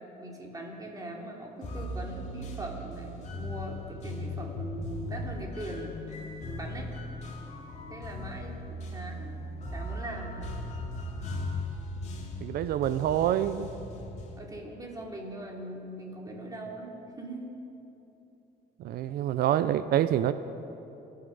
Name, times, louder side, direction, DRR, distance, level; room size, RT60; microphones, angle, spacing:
voice 1, 0.2-5.9 6.4-6.9 7.9-9.3 9.7-10.5 13.7-14.0 14.4-17.5, right 1 dB, 20° right, -1 dB, 3.0 m, -41 dB
sound 1, 1.6-14.4, left 1 dB, 40° left, 2.2 m, -38 dB
voice 2, 12.4-13.7 18.8-20.3, right 11 dB, 65° right, 13 dB, 0.5 m, -26 dB
25.5 x 9.5 x 5.4 m, 2.9 s
cardioid pair, 110°, 17 cm